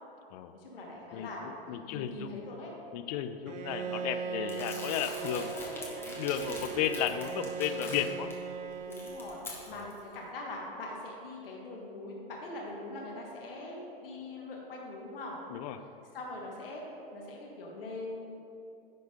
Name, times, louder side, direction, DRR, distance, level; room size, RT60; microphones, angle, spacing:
voice 1, 0.5-1.6 1.9-2.7 5.2-6.3 8.9-15.4 16.1-16.8 17.1-18.4, left 2 dB, 70° left, -2 dB, 1.6 m, -42 dB
voice 2, 1.1-2.4 2.9-5.5 6.2-8.3 9.7-9.9 15.5-15.8, left 10 dB, 45° left, 9 dB, 0.5 m, -34 dB
Bowed string instrument, 3.5-9.7, right 6 dB, 25° right, 0.4 m, -39 dB
Crumpling crinkling, 4.5-8.3 8.7-10.0, left 2 dB, 10° left, 1.5 m, -44 dB
10.5 x 3.9 x 5.2 m, 2.7 s
hypercardioid pair, 105°, 29 cm